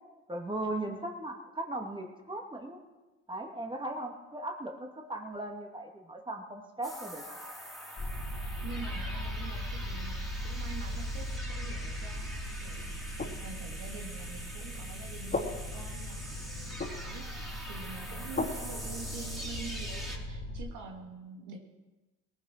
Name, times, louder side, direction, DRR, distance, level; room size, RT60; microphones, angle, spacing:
voice 1, 0.3-2.8 3.3-7.2, right 1 dB, 15° right, 2 dB, 2.3 m, -38 dB
sound 1, 6.8-20.2, equal, ahead, 3.3 m, -44 dB
sound 2, 8.0-20.6, left 1 dB, 30° left, 3.0 m, -38 dB
voice 2, 8.6-21.6, right 5 dB, 75° right, 1 dB, 2.4 m, -46 dB
19.0 x 11.0 x 4.5 m, 1.1 s
supercardioid pair, 70°, 31 cm